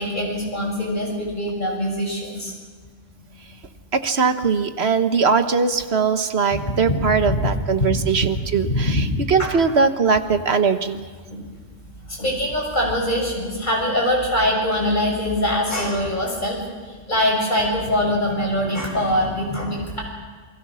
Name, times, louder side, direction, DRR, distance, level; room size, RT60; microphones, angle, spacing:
voice 1, 0.0-2.5 6.5-6.6 7.0-7.5 7.8-8.0 8.7-9.0 9.4-9.5 11.3-11.5 12.1-20.0, left 1 dB, 40° left, -1 dB, 7.0 m, -23 dB
voice 2, 3.9-11.0, right 5 dB, 60° right, 9 dB, 1.4 m, -20 dB
28.0 x 23.0 x 6.3 m, 1.5 s
omnidirectional pair, 1.3 m